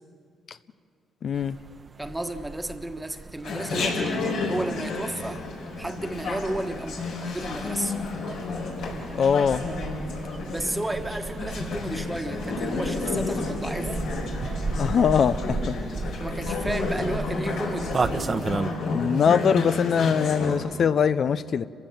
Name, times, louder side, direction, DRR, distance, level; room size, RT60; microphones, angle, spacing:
voice 1, 1.2-1.6 9.1-9.6 14.8-15.8 18.9-21.7, left 7 dB, 55° left, 0.5 m, -22 dB
sound 1, 1.3-18.7, right 4 dB, 35° right, 1.0 m, -35 dB
voice 2, 2.0-5.4 5.8-7.0 7.3-8.0 10.5-14.0 16.2-18.0, right 1 dB, 10° right, 1.4 m, -32 dB
Chatter, 3.4-20.5, left 3 dB, 85° left, 4.5 m, -31 dB
29.5 x 15.5 x 7.2 m
cardioid pair, 90°, 0 cm